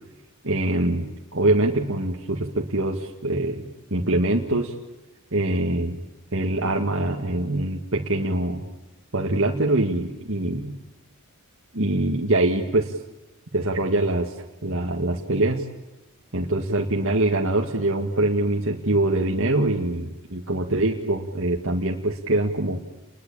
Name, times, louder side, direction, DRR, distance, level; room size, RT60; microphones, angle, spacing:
voice 1, 0.4-4.7 5.3-6.0 6.3-8.6 9.1-10.7 11.7-13.0 13.5-14.3 14.6-15.6 16.3-22.8, right 2 dB, 60° right, 0 dB, 2.0 m, -24 dB
29.5 x 21.0 x 8.8 m, 1.0 s
head